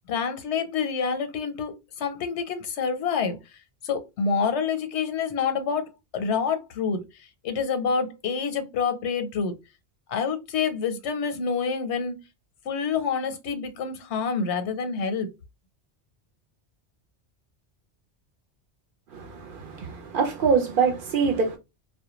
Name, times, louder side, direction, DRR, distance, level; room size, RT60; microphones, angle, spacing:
voice 1, 0.1-3.4 3.8-7.0 7.4-9.5 10.1-12.2 12.7-15.3, left 5 dB, 85° left, 0.9 m, -27 dB
voice 2, 19.1-21.6, right 5 dB, 60° right, 0.6 m, -24 dB
2.1 x 2.1 x 2.9 m
omnidirectional pair, 1.1 m